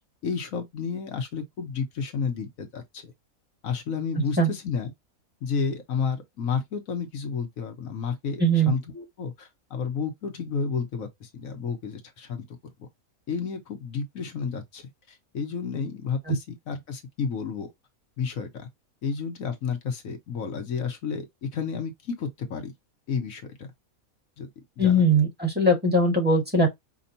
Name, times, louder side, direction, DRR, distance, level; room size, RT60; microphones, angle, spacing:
voice 1, 0.2-3.1 3.6-4.9 5.4-12.4 12.8-12.9 13.3-17.7 18.2-18.7 19.0-22.7 23.1-23.7 24.4-24.5 24.8-25.0, left 6 dB, 70° left, 1.4 m, -31 dB
voice 2, 8.4-8.7 16.3-16.4 24.8-26.7, right 1 dB, 5° right, 1.6 m, -20 dB
5.2 x 2.5 x 2.7 m
omnidirectional pair, 1.5 m